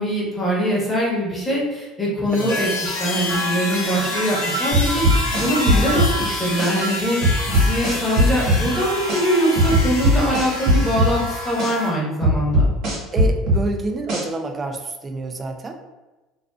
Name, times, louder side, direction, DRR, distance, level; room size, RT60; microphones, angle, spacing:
voice 1, 0.0-5.0 5.4-7.2 7.5-12.7, equal, 10° left, -5 dB, 0.9 m, -22 dB
sound 1, 2.3-11.9, left 1 dB, 65° left, 0.8 m, -27 dB
sound 2, 4.7-6.1 6.6-6.7 7.2-8.6 9.1-9.2 9.6-11.1 11.6-11.7 12.2-13.6 14.1-14.2, equal, 60° right, 1.2 m, -18 dB
voice 2, 13.1-15.8, right 3 dB, 25° right, 4 dB, 0.3 m, -28 dB
2.4 x 2.3 x 2.3 m, 1.1 s
supercardioid pair, 120°, 0 cm